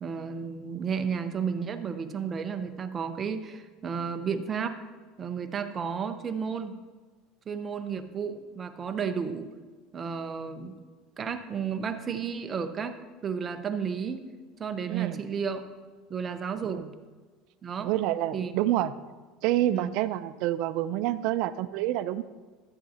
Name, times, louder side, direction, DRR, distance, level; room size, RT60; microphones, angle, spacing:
voice 1, 0.0-4.8 5.2-6.8 7.5-9.5 9.9-10.7 11.2-13.0 13.2-14.2 14.6-15.6 16.1-16.8 17.6-17.9 18.3-18.5 19.7-20.0, right 6 dB, 25° right, 7 dB, 0.7 m, -32 dB
voice 2, 14.9-15.2 16.6-16.9 17.8-18.9 19.4-22.2, right 14 dB, 60° right, 12 dB, 0.4 m, -28 dB
14.0 x 8.8 x 2.8 m, 1.4 s
cardioid pair, 155°, 0 cm